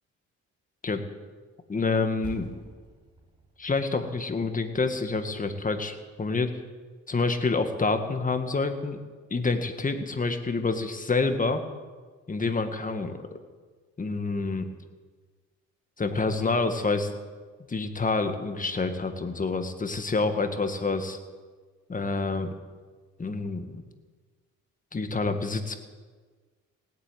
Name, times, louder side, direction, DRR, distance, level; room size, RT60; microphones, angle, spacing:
voice 1, 1.7-2.5 3.6-6.5 7.1-9.0 9.3-11.6 12.3-13.2 14.0-14.7 16.0-17.1 17.7-21.2 21.9-22.5 23.2-23.8 24.9-25.8, left 3 dB, 25° left, 7 dB, 1.7 m, -27 dB
Percussion, 2.2-7.1, right 1 dB, 15° right, 6.1 m, -50 dB
17.5 x 8.5 x 9.1 m, 1.5 s
cardioid pair, 90°, 30 cm